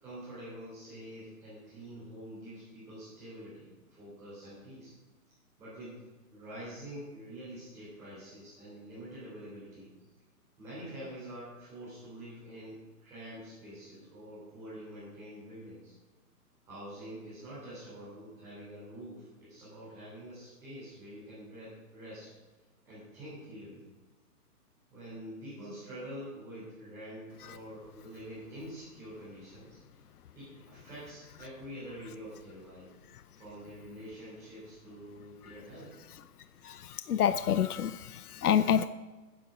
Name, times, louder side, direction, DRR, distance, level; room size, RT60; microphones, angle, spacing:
voice 1, 0.0-4.9 5.6-9.9 10.6-15.9 16.6-22.3 22.9-23.8 24.9-30.0 30.3-32.9 33.3-35.9, equal, 5° right, -12 dB, 3.9 m, -46 dB
voice 2, 36.6-38.9, left 9 dB, 70° left, 13 dB, 0.7 m, -28 dB
14.5 x 10.0 x 5.1 m, 1.2 s
hypercardioid pair, 180°, 47 cm